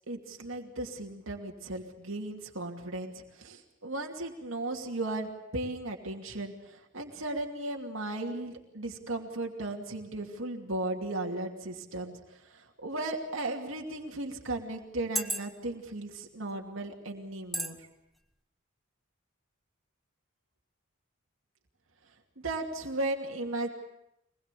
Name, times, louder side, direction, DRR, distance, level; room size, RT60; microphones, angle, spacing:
voice 1, 0.1-17.9 22.4-23.7, right 2 dB, 70° right, 1 dB, 2.6 m, -36 dB
sound 1, 13.0-13.2 14.0-14.1 14.9-15.8 16.5-16.7 17.5-17.8 18.2-18.3, equal, ahead, 1.1 m, -33 dB
24.5 x 20.5 x 8.3 m, 0.84 s
head